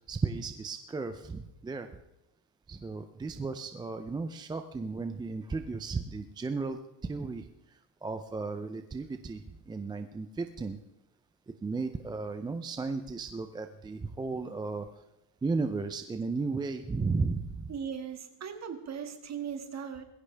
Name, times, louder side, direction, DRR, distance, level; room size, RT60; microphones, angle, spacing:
voice 1, 0.1-1.9 2.7-7.5 8.0-10.8 11.6-14.9 15.4-17.7, right 4 dB, 10° right, 7 dB, 0.4 m, -34 dB
voice 2, 17.7-20.0, right 7 dB, 35° right, 6 dB, 2.0 m, -38 dB
20.0 x 16.5 x 3.4 m, 0.91 s
cardioid pair, 155°, 48 cm